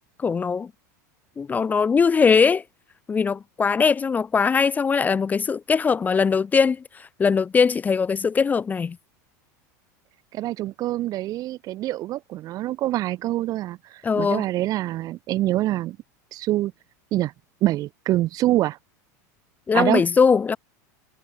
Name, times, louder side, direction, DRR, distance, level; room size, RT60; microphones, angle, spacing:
voice 1, 0.2-0.7 1.4-2.6 3.1-9.0 14.0-14.5 19.7-20.6, left 5 dB, 15° left, 0.7 m, -21 dB
voice 2, 10.3-16.0 16.3-16.7 17.1-17.3 17.6-18.8 19.7-20.0, right 15 dB, 40° right, 0.8 m, -25 dB
supercardioid pair, 130°, 9 cm